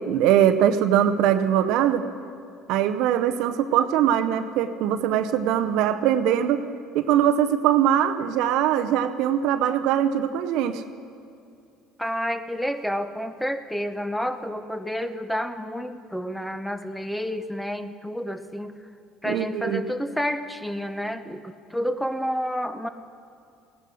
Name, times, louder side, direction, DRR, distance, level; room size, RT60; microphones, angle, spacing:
voice 1, 0.1-2.0 2.7-6.6 6.9-10.8 19.3-19.8, right 10 dB, 70° right, 10 dB, 0.7 m, -22 dB
voice 2, 12.0-18.8 19.2-22.9, equal, 5° left, 10 dB, 0.9 m, -30 dB
17.0 x 10.0 x 6.3 m, 2.5 s
hypercardioid pair, 75°, 0 cm